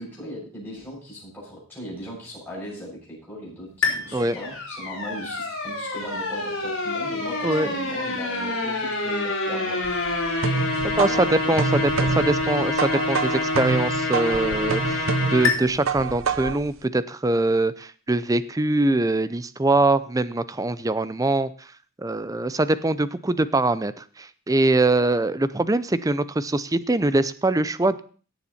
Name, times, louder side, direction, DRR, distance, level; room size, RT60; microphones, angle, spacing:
voice 1, 0.0-9.8 10.7-11.6, equal, 10° left, -7 dB, 7.2 m, -38 dB
sound 1, 3.8-15.5, left 3 dB, 65° left, 4.1 m, -27 dB
sound 2, 9.8-16.7, right 5 dB, 65° right, 0.6 m, -27 dB
voice 2, 11.0-21.7 22.0-28.0, right 2 dB, 15° right, 15 dB, 0.5 m, -23 dB
17.0 x 7.3 x 4.2 m, 0.40 s
head